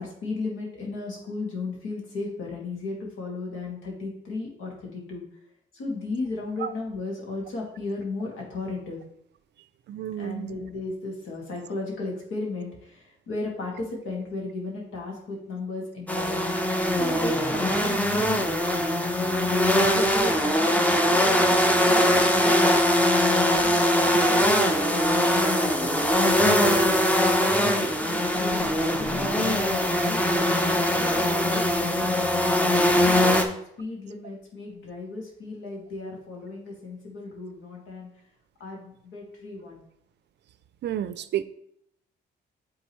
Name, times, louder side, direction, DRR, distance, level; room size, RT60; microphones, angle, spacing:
voice 1, 0.0-5.2 5.7-9.0 10.2-16.4 17.0-18.4 19.4-23.2 23.6-26.0 26.6-29.6 30.0-30.2 30.7-33.5 33.8-38.1 38.6-39.8, left 3 dB, 80° left, -1 dB, 2.1 m, -36 dB
voice 2, 9.9-10.6 18.7-18.8 40.8-41.4, right 11 dB, 60° right, 13 dB, 0.4 m, -31 dB
sound 1, 16.1-33.5, equal, 5° left, 0.8 m, -22 dB
9.1 x 3.7 x 3.1 m, 0.73 s
cardioid pair, 90°, 20 cm